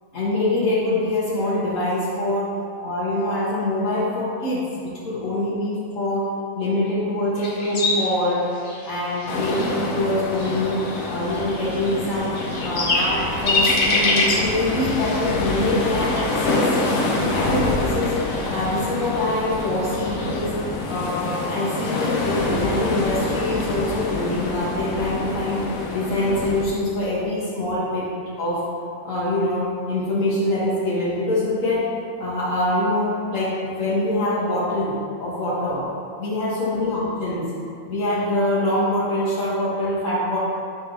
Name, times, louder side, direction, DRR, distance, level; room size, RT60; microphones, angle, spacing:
voice 1, 0.1-2.5 2.8-6.3 6.6-8.5 8.8-12.3 12.6-16.7 17.3-18.1 18.5-20.5 20.9-28.1 28.4-28.6 29.0-31.9 32.2-35.8 36.2-37.5 37.8-40.4, left 1 dB, 65° left, -8 dB, 2.1 m, -24 dB
sound 1, 7.4-20.4, left 2 dB, 50° left, 1.4 m, -28 dB
sound 2, 9.3-26.7, left 2 dB, 85° left, 1.4 m, -26 dB
10.0 x 3.8 x 5.6 m, 2.5 s
omnidirectional pair, 1.4 m